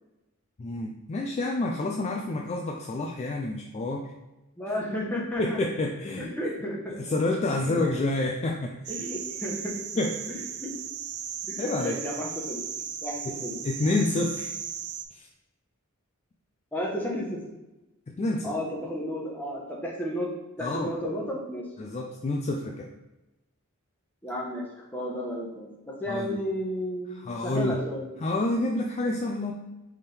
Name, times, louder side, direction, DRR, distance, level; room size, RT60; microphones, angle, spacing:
voice 1, 0.6-4.1 5.4-6.5 7.0-8.9 10.0-10.3 11.6-12.0 13.3-13.4 13.6-14.5 15.1-15.3 18.2-18.5 20.6-20.9 21.8-22.9 26.1-26.4 27.2-27.8 28.2-29.5, left 2 dB, 30° left, 1 dB, 0.3 m, -28 dB
voice 2, 4.6-5.6 6.2-6.9 7.4-7.8 8.9-9.8 10.3-10.7 11.5-12.6 13.0-13.6 16.7-17.4 18.4-20.3 20.6-21.7 24.2-28.1, equal, 10° left, -3 dB, 0.9 m, -33 dB
sound 1, 8.8-15.0, right 8 dB, 80° right, 0.4 m, -36 dB
4.3 x 3.6 x 3.3 m, 1.0 s
head